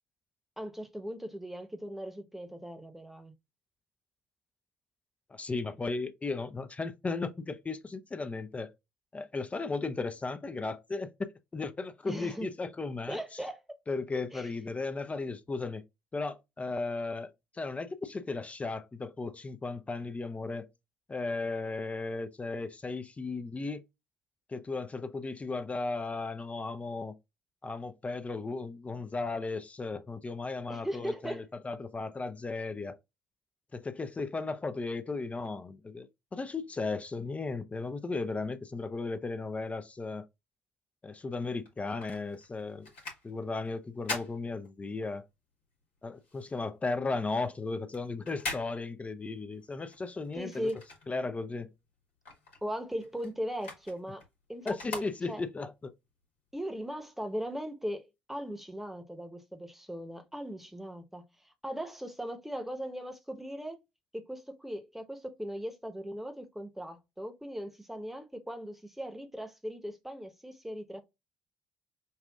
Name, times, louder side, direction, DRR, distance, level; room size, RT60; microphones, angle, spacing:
voice 1, 0.6-3.3 12.0-12.5 13.1-13.6 14.3-14.5 30.7-31.4 50.4-50.8 52.6-55.4 56.5-63.8 64.1-71.0, equal, 5° right, 1.0 m, -39 dB
voice 2, 5.3-8.7 9.1-13.2 13.9-15.8 16.1-20.7 21.1-23.8 24.5-27.2 27.6-33.0 33.7-40.3 41.0-42.9 43.2-45.3 46.0-50.7 51.1-51.7 54.7-55.9, left 3 dB, 25° left, 0.5 m, -35 dB
sound 1, 41.6-45.3 45.6-51.6 51.9-55.7 56.2-56.3, left 3 dB, 80° left, 1.3 m, -43 dB
5.4 x 2.4 x 2.3 m
figure-of-eight pair, 50°, 6 cm